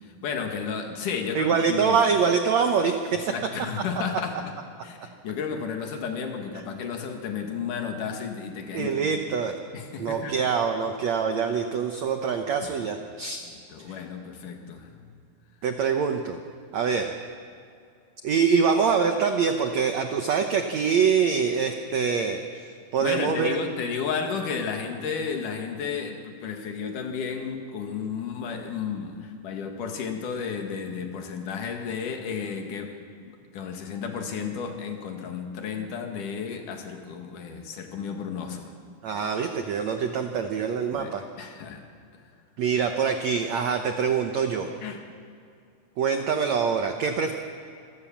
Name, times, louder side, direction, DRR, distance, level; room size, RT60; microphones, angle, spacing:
voice 1, 0.0-2.0 3.1-4.4 4.8-9.3 9.7-10.3 13.7-15.1 23.0-32.9 33.2-38.7 40.9-41.1 41.4-41.8 44.8-45.0, left 6 dB, 55° left, 4 dB, 3.1 m, -33 dB
voice 2, 1.3-3.2 8.7-9.6 10.0-13.5 13.9-14.0 15.6-16.4 16.7-17.1 18.2-23.6 39.0-41.2 42.6-44.7 46.0-47.3, right 6 dB, 85° right, 5 dB, 1.5 m, -24 dB
27.5 x 16.0 x 7.4 m, 2.4 s
omnidirectional pair, 4.7 m